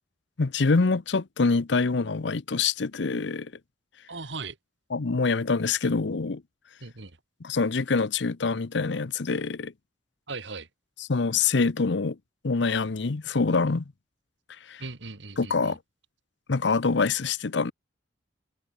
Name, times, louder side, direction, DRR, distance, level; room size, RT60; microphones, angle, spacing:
voice 1, 0.4-3.5 4.9-6.4 7.4-9.7 11.0-12.2 12.4-13.8 14.7-14.8 15.4-15.8 16.5-17.7, left 4 dB, 65° left, 0.7 m, -25 dB
voice 2, 4.1-4.6 6.8-7.1 10.3-10.7 14.8-15.7, right 3 dB, 65° right, 1.9 m, -38 dB
head